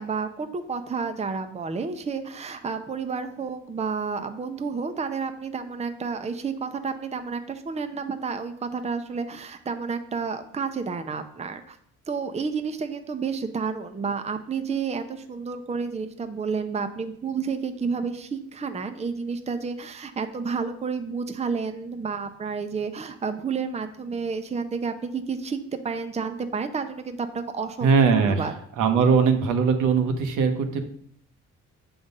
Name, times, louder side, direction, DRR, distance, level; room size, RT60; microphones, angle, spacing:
voice 1, 0.0-11.8 12.1-27.9 28.3-28.5, right 5 dB, 20° right, 8 dB, 0.6 m, -30 dB
voice 2, 27.8-28.4 28.8-30.8, right 5 dB, 80° right, 6 dB, 1.0 m, -20 dB
6.9 x 3.8 x 5.4 m, 0.64 s
cardioid pair, 90°, 30 cm